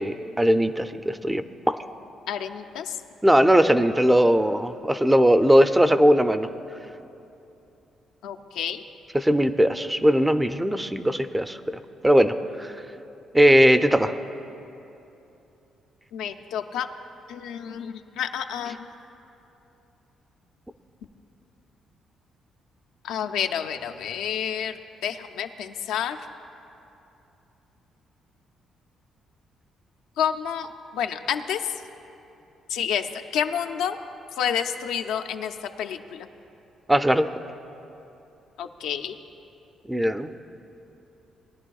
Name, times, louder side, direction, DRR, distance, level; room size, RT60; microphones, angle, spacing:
voice 1, 0.0-1.8 3.2-6.5 9.1-11.6 12.0-12.7 13.3-14.1 36.9-37.3 39.9-40.3, equal, 10° right, 10 dB, 0.4 m, -19 dB
voice 2, 2.3-3.0 8.2-8.8 16.1-16.9 17.3-18.9 23.0-26.2 30.2-31.7 32.7-34.0 34.4-36.3 38.6-39.2, left 8 dB, 90° left, 6 dB, 0.5 m, -29 dB
19.5 x 10.5 x 2.3 m, 2.9 s
cardioid pair, 90°, 0 cm